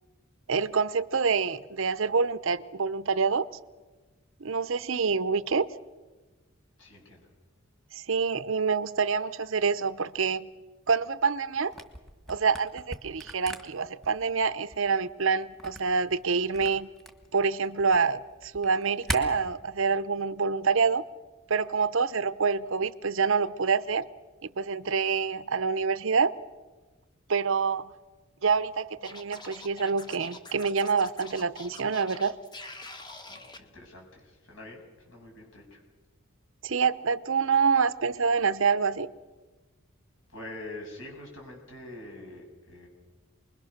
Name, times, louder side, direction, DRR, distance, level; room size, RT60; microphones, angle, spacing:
voice 1, 0.5-3.5 4.4-5.7 7.9-10.5 10.9-11.7 12.3-16.9 17.3-21.0 21.5-24.1 24.4-26.4 27.3-27.9 28.4-32.4 36.6-39.1, right 5 dB, 65° right, 0.7 m, -26 dB
voice 2, 6.8-7.3 33.3-35.8 40.3-42.9, left 2 dB, 65° left, 7.2 m, -45 dB
Camera, 11.7-19.2, equal, ahead, 1.7 m, -40 dB
Scratching (performance technique), 29.0-33.6, left 2 dB, 20° left, 1.5 m, -45 dB
28.5 x 21.5 x 6.6 m
head